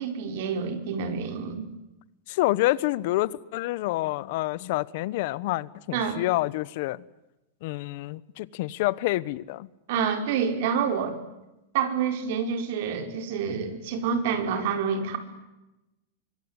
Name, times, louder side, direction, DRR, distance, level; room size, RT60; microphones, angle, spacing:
voice 1, 0.0-1.7 5.9-6.2 9.9-11.2 11.7-15.2, right 6 dB, 60° right, 4.9 m, -28 dB
voice 2, 2.3-7.0 7.6-9.7, left 18 dB, 55° left, 1.0 m, -28 dB
25.0 x 23.0 x 9.7 m
supercardioid pair, 150°, 0 cm